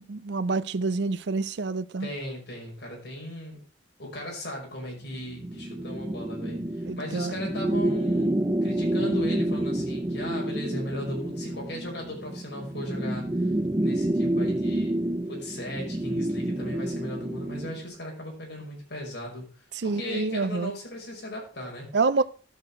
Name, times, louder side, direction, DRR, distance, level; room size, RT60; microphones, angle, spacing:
voice 1, 0.0-2.1 6.9-7.4 19.8-20.7 21.9-22.2, right 3 dB, 65° right, 0.5 m, -27 dB
voice 2, 2.0-3.6 4.0-13.5 13.8-19.5 19.8-21.9, left 1 dB, 65° left, 5.4 m, -37 dB
sound 1, 5.4-17.8, right 1 dB, 20° right, 0.6 m, -28 dB
13.0 x 6.4 x 4.8 m
head